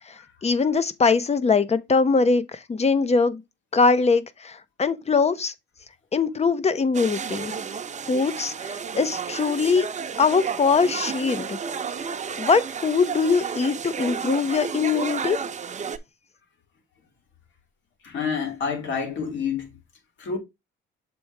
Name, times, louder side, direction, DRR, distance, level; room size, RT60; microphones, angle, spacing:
voice 1, 0.1-3.4 3.7-5.5 6.1-7.5 8.1-9.9 10.2-11.6 12.4-15.4, left 4 dB, 35° left, 0.9 m, -22 dB
sound 1, 6.9-16.0, right 6 dB, 35° right, 0.8 m, -32 dB
voice 2, 18.0-19.7 20.2-20.4, left 6 dB, 70° left, 2.9 m, -28 dB
7.0 x 3.4 x 4.7 m
cardioid pair, 90°, 20 cm